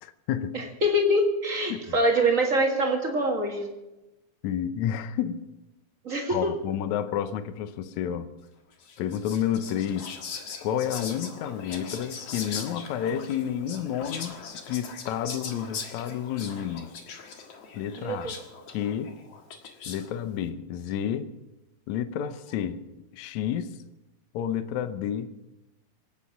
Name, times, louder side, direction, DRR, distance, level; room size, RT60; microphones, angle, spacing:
voice 1, 0.0-0.6 1.7-2.0 4.4-5.4 6.3-8.3 9.0-10.2 10.6-16.9 17.7-18.3 18.7-19.1 19.9-21.3 21.9-22.8 23.1-23.8 24.3-25.3, left 9 dB, 80° left, 1.6 m, -30 dB
voice 2, 0.5-3.7 6.0-6.5 18.0-18.3, right 1 dB, 40° right, 1.1 m, -24 dB
Whispering, 8.8-20.1, left 5 dB, 50° left, 2.1 m, -40 dB
27.0 x 9.0 x 5.9 m
omnidirectional pair, 4.4 m